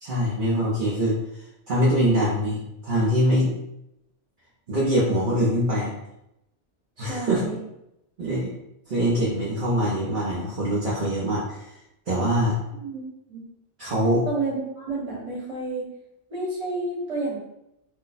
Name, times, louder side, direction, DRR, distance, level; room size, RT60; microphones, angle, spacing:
voice 1, 0.0-1.2 1.7-3.5 4.7-5.9 7.0-7.4 8.2-8.5 8.9-11.7 12.1-12.5 13.8-14.3, equal, 50° right, -6 dB, 0.8 m, -23 dB
voice 2, 7.0-7.6 12.8-13.4 14.3-15.9 16.3-17.4, right 2 dB, 30° right, -6 dB, 1.1 m, -30 dB
2.6 x 2.1 x 3.9 m, 0.84 s
omnidirectional pair, 1.2 m